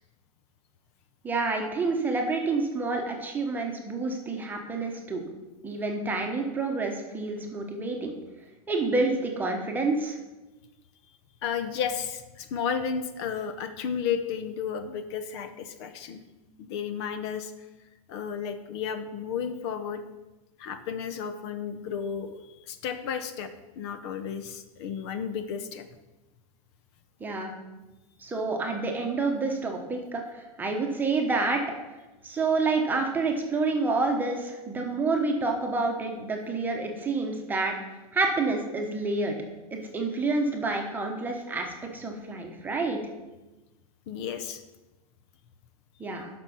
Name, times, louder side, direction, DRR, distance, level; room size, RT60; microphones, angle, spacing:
voice 1, 1.2-5.2 5.6-8.1 8.7-10.2 27.2-27.5 28.2-31.6 32.2-37.7 38.1-39.3 39.7-43.0 46.0-46.3, right 3 dB, 10° right, 2 dB, 1.1 m, -28 dB
voice 2, 11.4-16.2 16.6-17.5 18.1-20.0 20.6-23.5 23.8-25.9 44.1-44.6, left 7 dB, 50° left, 9 dB, 0.8 m, -33 dB
10.5 x 6.1 x 5.5 m, 1.1 s
supercardioid pair, 165°, 19 cm